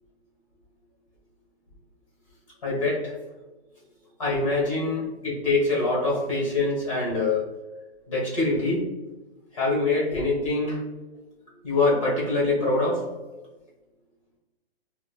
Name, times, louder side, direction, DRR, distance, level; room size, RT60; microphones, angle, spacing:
voice 1, 2.6-3.1 4.2-7.4 8.1-8.8 9.5-10.8 11.6-13.0, left 2 dB, 30° left, -5 dB, 1.2 m, -24 dB
4.8 x 2.1 x 2.3 m, 1.1 s
hypercardioid pair, 175°, 32 cm